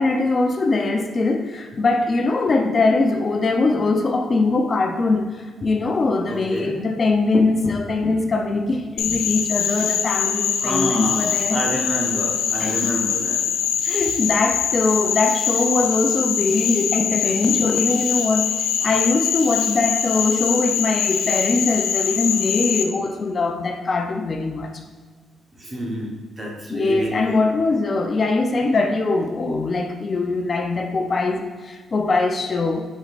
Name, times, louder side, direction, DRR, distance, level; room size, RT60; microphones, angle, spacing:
voice 1, 0.0-11.6 12.6-12.8 13.8-24.8 26.7-32.9, left 3 dB, 35° left, 5 dB, 0.6 m, -22 dB
voice 2, 6.3-6.7 10.6-13.4 25.5-27.4, right 1 dB, 30° right, -1 dB, 1.1 m, -28 dB
Frog, 9.0-22.8, left 8 dB, 85° left, 0.5 m, -23 dB
6.5 x 6.2 x 2.5 m, 1.5 s
cardioid pair, 90°, 0 cm